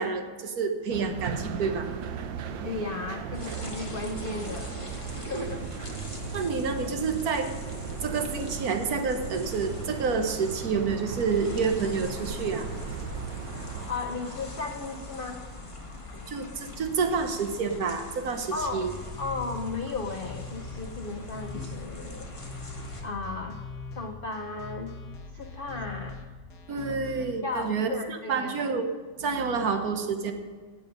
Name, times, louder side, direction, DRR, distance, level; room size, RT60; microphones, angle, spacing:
voice 1, 0.0-1.9 5.3-5.5 6.3-7.5 8.0-12.7 16.3-18.9 26.7-28.9 29.2-30.3, right 5 dB, 55° right, 7 dB, 1.4 m, -28 dB
sound 1, 0.9-13.9, right 7 dB, 75° right, 1.5 m, -37 dB
voice 2, 2.5-6.0 13.9-15.4 18.5-18.9 19.2-22.3 23.0-23.6 24.0-25.0 25.3-26.2 27.4-28.5, left 3 dB, 85° left, 5 dB, 0.4 m, -35 dB
sound 2, 3.3-23.0, left 2 dB, 20° left, 1.3 m, -42 dB
sound 3, 18.6-27.3, left 4 dB, 65° left, 1.7 m, -42 dB
16.0 x 8.0 x 5.2 m, 1.5 s
omnidirectional pair, 2.1 m